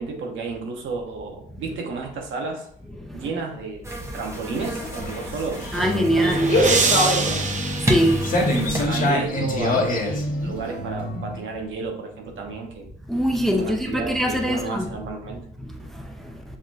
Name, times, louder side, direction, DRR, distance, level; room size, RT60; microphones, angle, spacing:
voice 1, 0.0-2.7 3.1-3.9 4.1-7.4 8.8-12.9 13.6-15.4, right 4 dB, 75° right, 1.2 m, -32 dB
sound 1, 3.8-8.9, equal, 15° right, 1.0 m, -31 dB
sound 2, 4.5-11.4, left 1 dB, 45° left, 1.3 m, -24 dB
sound 3, 5.6-9.0, right 4 dB, 40° right, 0.7 m, -26 dB
voice 2, 5.7-6.5 7.9-8.3 8.7-8.8 13.1-14.9 15.6-16.0, equal, ahead, 0.6 m, -23 dB
6.5 x 2.9 x 2.6 m
cardioid pair, 90°, 20 cm